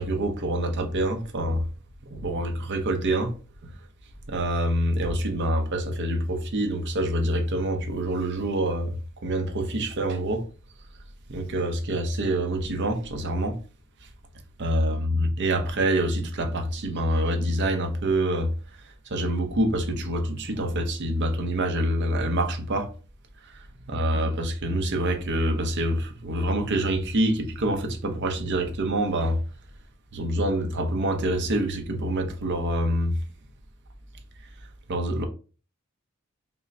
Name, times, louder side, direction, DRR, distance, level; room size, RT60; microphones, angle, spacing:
voice 1, 0.0-1.6 2.1-3.3 4.3-8.9 9.2-10.5 11.3-13.6 14.6-18.5 19.1-22.9 23.5-29.4 30.1-33.2 34.9-35.3, right 1 dB, 55° right, 0.6 m, -26 dB
5.3 x 2.0 x 2.6 m
head